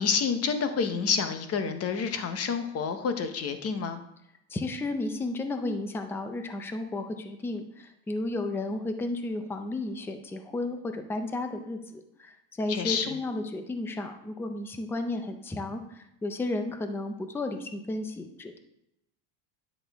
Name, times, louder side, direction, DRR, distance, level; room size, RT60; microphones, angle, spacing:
voice 1, 0.0-4.0 12.7-13.2, left 6 dB, 30° left, 8 dB, 0.9 m, -28 dB
voice 2, 4.5-18.6, left 2 dB, 5° left, 7 dB, 0.4 m, -33 dB
10.0 x 6.1 x 3.5 m, 0.82 s
cardioid pair, 145°, 45 cm